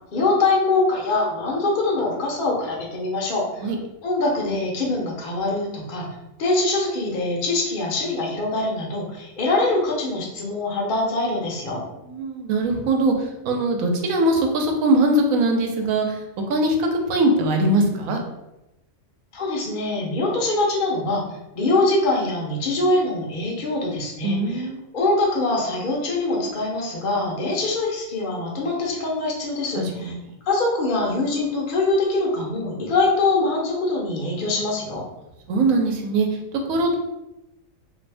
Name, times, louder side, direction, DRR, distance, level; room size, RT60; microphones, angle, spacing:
voice 1, 0.1-3.7 4.0-6.0 6.4-11.8 19.3-21.2 21.5-24.7 24.9-30.1 30.5-35.0, left 2 dB, 50° left, -2 dB, 0.7 m, -23 dB
voice 2, 12.0-16.2 16.5-18.2 24.2-24.8 29.8-30.2 35.5-37.0, right 2 dB, 90° right, 3 dB, 1.0 m, -21 dB
2.6 x 2.6 x 3.3 m, 0.91 s
omnidirectional pair, 1.4 m